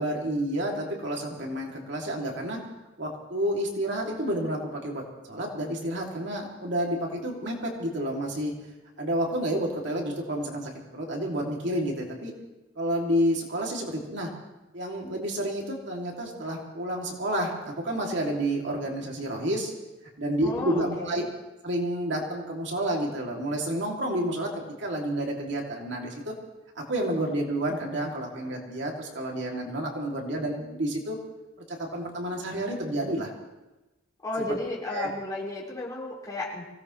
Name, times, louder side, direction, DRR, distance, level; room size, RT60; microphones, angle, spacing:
voice 1, 0.0-2.6 3.0-5.0 5.3-8.5 9.0-12.3 12.8-14.3 14.7-19.7 20.2-21.2 21.6-26.3 26.8-31.2 31.7-33.3 34.9-35.1, right 1 dB, 60° right, -1 dB, 2.7 m, -30 dB
voice 2, 20.4-21.3 34.2-36.6, left 2 dB, 20° left, -6 dB, 4.5 m, -33 dB
24.5 x 17.0 x 3.2 m, 1.0 s
head